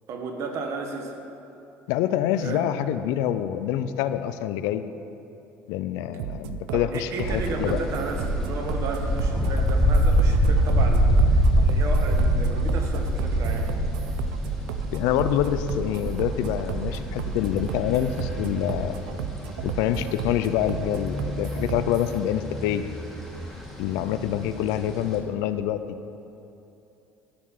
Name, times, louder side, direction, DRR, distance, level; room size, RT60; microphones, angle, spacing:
voice 1, 0.1-1.2 2.4-2.7 6.7-13.7, right 4 dB, 60° right, 3 dB, 1.6 m, -33 dB
voice 2, 1.9-4.8 5.7-7.8 14.9-18.9 19.6-22.8 23.8-25.8, left 11 dB, 80° left, 12 dB, 0.5 m, -26 dB
sound 1, 6.2-22.2, right 10 dB, 85° right, 0.6 m, -34 dB
sound 2, 7.2-25.2, equal, ahead, 2.6 m, -25 dB
14.0 x 5.8 x 6.6 m, 2.8 s
supercardioid pair, 95°, 6 cm